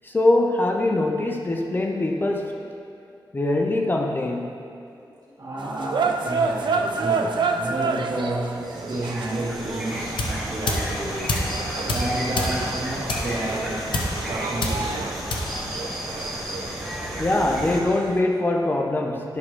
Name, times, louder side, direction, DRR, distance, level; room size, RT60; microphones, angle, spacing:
voice 1, 0.0-2.7 3.3-4.5 11.7-11.8 16.3-16.6 17.2-19.4, left 2 dB, 25° left, 2 dB, 0.5 m, -23 dB
voice 2, 5.4-11.4 11.9-15.6, right 1 dB, 55° right, -6 dB, 2.0 m, -31 dB
sound 1, 5.6-18.2, right 4 dB, 75° right, 0.5 m, -30 dB
sound 2, 8.6-17.8, equal, ahead, 1.2 m, -34 dB
sound 3, 9.9-16.4, left 1 dB, 80° left, 1.0 m, -30 dB
11.0 x 6.1 x 3.2 m, 2.5 s
wide cardioid pair, 135°, 8 cm